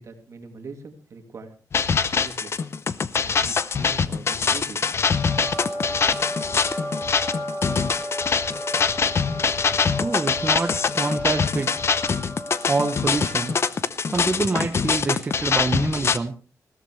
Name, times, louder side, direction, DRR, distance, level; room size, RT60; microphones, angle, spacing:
voice 1, 0.0-2.6 3.2-4.8, right 4 dB, 50° right, 5 dB, 2.7 m, -42 dB
sound 1, 1.7-16.2, left 5 dB, 40° left, 0.7 m, -24 dB
sound 2, 4.9-13.8, left 1 dB, 25° left, 7.3 m, -33 dB
voice 2, 10.0-11.7 12.7-13.5 14.1-16.3, right 3 dB, 25° right, 4 dB, 1.1 m, -26 dB
20.0 x 16.5 x 3.2 m, 0.35 s
wide cardioid pair, 160°, 6 cm